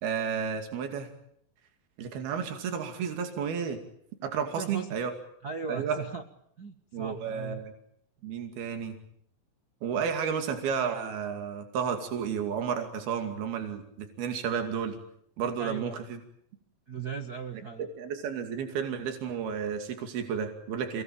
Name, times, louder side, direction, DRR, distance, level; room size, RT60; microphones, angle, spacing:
voice 1, 0.0-1.1 2.0-3.8 4.2-5.1 5.7-6.0 6.9-7.7 8.2-9.0 9.8-15.0 15.4-16.2 18.0-21.0, right 7 dB, 80° right, 6 dB, 4.5 m, -32 dB
voice 2, 4.6-5.1 5.4-6.2 6.6-7.6 15.6-16.0 16.9-17.9, right 6 dB, 55° right, 5 dB, 1.0 m, -38 dB
29.0 x 21.0 x 9.0 m, 0.71 s
omnidirectional pair, 4.3 m